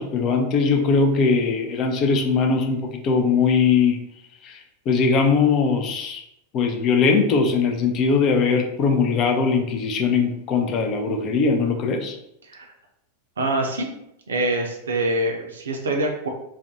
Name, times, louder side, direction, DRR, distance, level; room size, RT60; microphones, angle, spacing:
voice 1, 0.0-4.0 4.4-4.6 4.9-6.2 6.5-12.2, left 5 dB, 35° left, 3 dB, 0.4 m, -20 dB
voice 2, 12.4-12.7 13.4-13.9 14.3-16.3, right 1 dB, 65° right, 2 dB, 0.4 m, -25 dB
2.4 x 2.1 x 2.6 m, 0.80 s
figure-of-eight pair, 90°, 0 cm